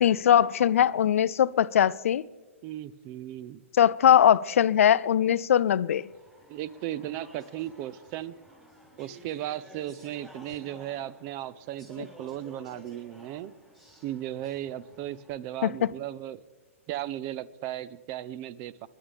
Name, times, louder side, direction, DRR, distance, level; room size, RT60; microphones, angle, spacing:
voice 1, 0.0-2.2 3.8-6.1 15.6-15.7, left 10 dB, 70° left, 0.4 m, -21 dB
voice 2, 2.6-3.6 6.5-8.3 9.0-13.5 14.0-16.4 16.9-18.9, right 13 dB, 35° right, 0.5 m, -36 dB
Speech / Chatter, 5.9-15.3, equal, 5° right, 5.7 m, -53 dB
26.0 x 11.0 x 3.5 m
hypercardioid pair, 125°, 8 cm